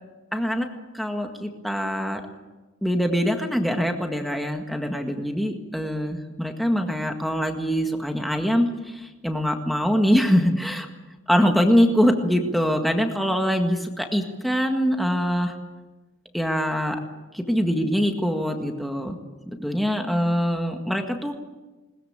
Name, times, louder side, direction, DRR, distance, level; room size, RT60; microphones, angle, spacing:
voice 1, 0.3-0.7 0.9-2.2 2.8-8.7 8.9-10.9 11.3-15.5 16.3-17.0 17.3-19.2 19.5-21.4, equal, ahead, 3 dB, 1.8 m, -23 dB
20.5 x 20.5 x 8.8 m, 1.1 s
head